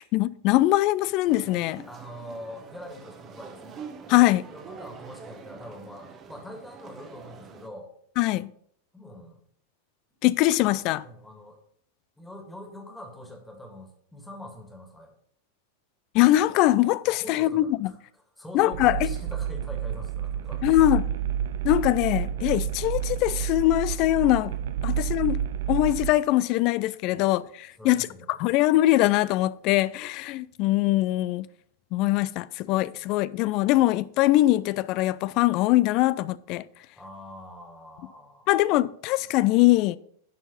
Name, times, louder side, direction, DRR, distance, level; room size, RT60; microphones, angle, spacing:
voice 1, 0.0-1.8 4.1-4.5 8.2-8.5 10.2-11.0 16.1-17.9 18.5-19.1 20.6-21.1 21.6-24.5 24.8-25.4 25.7-27.4 27.8-31.5 31.9-36.7 38.5-40.0, left 16 dB, 40° left, 0.3 m, -22 dB
sound 1, 1.2-7.7, right 6 dB, 30° right, 1.1 m, -45 dB
voice 2, 1.9-3.8 4.5-7.9 8.9-9.4 11.0-11.6 12.2-15.1 17.2-18.0 18.4-20.9 27.1-27.3 27.8-28.4 32.7-33.2 37.0-38.5, left 1 dB, 5° left, 1.9 m, -44 dB
sound 2, 18.7-26.1, right 9 dB, 55° right, 0.5 m, -29 dB
10.5 x 4.4 x 5.3 m
figure-of-eight pair, 90°, 0 cm